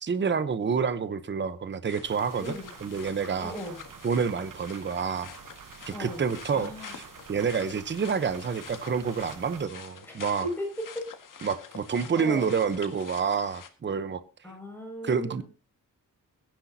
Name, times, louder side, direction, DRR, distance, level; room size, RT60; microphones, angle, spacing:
voice 1, 0.0-2.6 2.8-3.5 4.0-5.3 5.9-7.0 7.3-10.5 11.4-14.2 15.0-15.4, right 6 dB, 35° right, 0.8 m, -28 dB
sound 1, 1.9-13.7, left 7 dB, 75° left, 1.8 m, -47 dB
sound 2, 2.1-9.7, right 8 dB, 80° right, 1.0 m, -48 dB
voice 2, 2.4-2.7 3.4-3.8 5.9-6.2 6.5-7.0 10.0-11.0 12.1-12.5 14.4-15.4, left 1 dB, 5° left, 5.9 m, -37 dB
21.5 x 10.5 x 2.8 m
wide cardioid pair, 155°, 32 cm